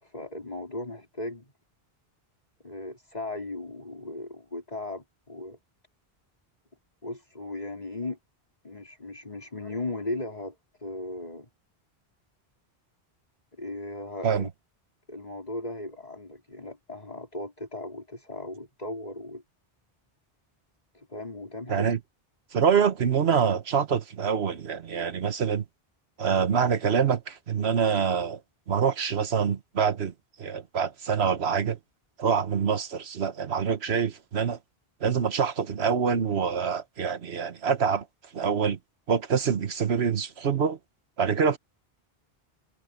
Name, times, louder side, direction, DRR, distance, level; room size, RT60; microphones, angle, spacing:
voice 1, 0.0-1.5 2.6-5.6 7.0-8.2 8.6-11.5 13.6-14.5 15.1-19.4 20.9-21.9, left 2 dB, 40° left, 4.5 m, -37 dB
voice 2, 21.7-22.0 22.5-25.6 26.2-28.4 28.7-30.1 30.4-31.8 32.2-34.6 35.0-38.0 38.3-38.8 39.1-40.8 41.2-41.6, right 6 dB, 85° right, 1.4 m, -25 dB
omnidirectional pair, 1.1 m